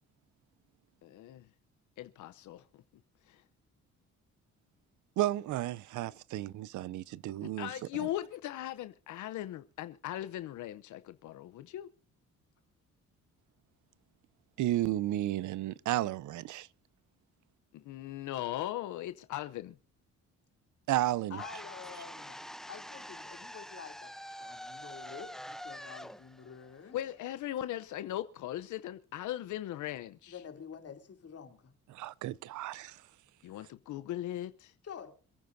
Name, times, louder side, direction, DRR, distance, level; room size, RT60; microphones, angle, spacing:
voice 1, 1.0-1.5 2.0-2.8 3.3-3.4 7.6-11.9 17.7-19.8 26.9-30.4 33.4-34.7, left 13 dB, 75° left, 0.7 m, -39 dB
voice 2, 5.2-7.7 8.0-8.1 14.6-16.7 20.9-21.4 31.9-33.0, right 14 dB, 75° right, 0.6 m, -33 dB
voice 3, 21.3-22.4 22.7-27.0 30.3-31.7 34.8-35.2, left 7 dB, 50° left, 3.0 m, -48 dB
sound 1, 21.4-27.5, equal, ahead, 0.6 m, -46 dB
27.0 x 9.5 x 2.6 m
cardioid pair, 90°, 30 cm